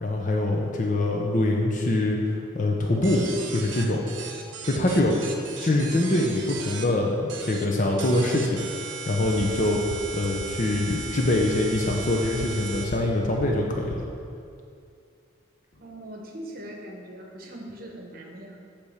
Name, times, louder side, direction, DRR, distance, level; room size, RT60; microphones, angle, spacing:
voice 1, 0.0-4.0 4.7-5.2 5.6-14.1, left 1 dB, 40° left, 0 dB, 0.6 m, -24 dB
sound 1, 3.0-6.8 7.3-7.6 8.0-12.8, right 5 dB, 70° right, 0.8 m, -37 dB
sound 2, 9.4-9.5 9.7-10.0 10.2-10.5 10.7-11.0 11.2-11.5 11.7-11.9 12.2-12.5 12.7-13.0 13.2-13.5 13.7-14.0, left 5 dB, 90° left, 0.5 m, -35 dB
voice 2, 15.8-18.6, right 1 dB, 45° right, 0 dB, 1.0 m, -41 dB
8.3 x 3.4 x 6.4 m, 2.4 s
head